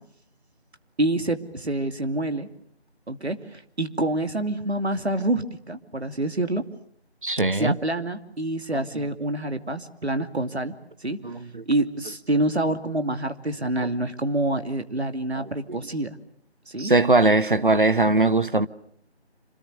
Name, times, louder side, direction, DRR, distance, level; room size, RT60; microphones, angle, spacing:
voice 1, 1.0-2.5 3.1-6.7 7.5-10.7 11.0-11.2 11.7-16.1 16.7-16.9, right 1 dB, 75° right, 2.8 m, -27 dB
voice 2, 7.2-7.8 11.2-11.6 13.8-13.9 15.4-15.5 16.8-18.7, right 2 dB, 50° right, 1.0 m, -20 dB
28.5 x 27.0 x 6.7 m
figure-of-eight pair, 175°, 33 cm